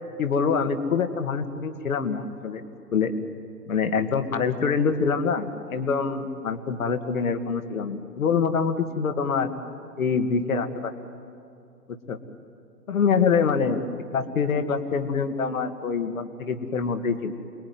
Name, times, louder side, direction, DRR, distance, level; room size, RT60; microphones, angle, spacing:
voice 1, 0.2-2.6 2.9-3.1 3.7-9.5 10.0-10.9 12.1-12.2 12.9-13.8 14.1-17.4, left 5 dB, 55° left, 8 dB, 2.3 m, -25 dB
28.5 x 21.0 x 9.6 m, 2.4 s
figure-of-eight pair, 125°, 49 cm